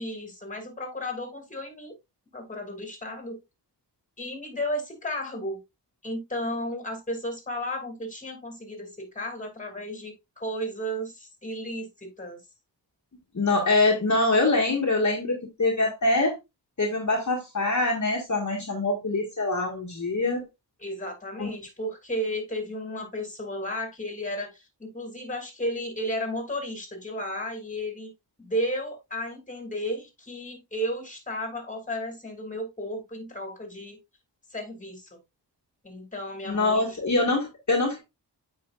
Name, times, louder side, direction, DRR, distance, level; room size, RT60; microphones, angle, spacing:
voice 1, 0.0-1.9 2.3-3.4 4.2-5.6 6.0-12.4 20.8-28.1 28.4-34.0 34.5-35.2 35.8-37.0, equal, 20° left, 2.5 m, -33 dB
voice 2, 13.3-16.3 16.8-20.4 21.4-21.5 36.5-38.0, left 2 dB, 45° left, 1.8 m, -24 dB
8.6 x 5.1 x 2.4 m
wide cardioid pair, 85°, 42 cm